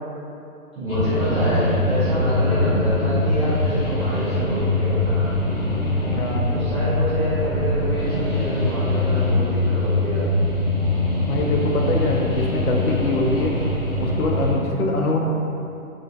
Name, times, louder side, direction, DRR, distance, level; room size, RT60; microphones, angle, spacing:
voice 1, 0.7-5.3 6.5-10.2, equal, 20° right, -17 dB, 0.7 m, -27 dB
sound 1, 0.8-14.5, left 2 dB, 40° left, 1.4 m, -22 dB
voice 2, 6.1-6.5 11.2-13.6 14.0-15.2, left 2 dB, 80° left, 0 dB, 0.7 m, -24 dB
3.8 x 2.5 x 2.3 m, 2.7 s
hypercardioid pair, 165°, 44 cm